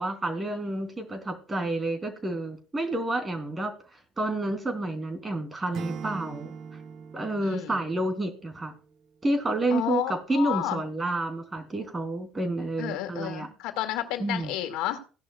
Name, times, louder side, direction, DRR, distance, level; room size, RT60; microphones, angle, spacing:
voice 1, 0.0-3.7 4.2-6.5 7.1-8.7 9.2-13.5 14.2-14.6, right 2 dB, 25° right, 8 dB, 3.2 m, -29 dB
Acoustic guitar / Strum, 5.7-8.8, right 6 dB, 55° right, 0.9 m, -41 dB
voice 2, 7.4-7.8 9.7-10.8 12.8-15.0, left 13 dB, 65° left, 8 dB, 1.9 m, -31 dB
16.5 x 11.0 x 2.4 m, 0.37 s
hypercardioid pair, 60°, 0 cm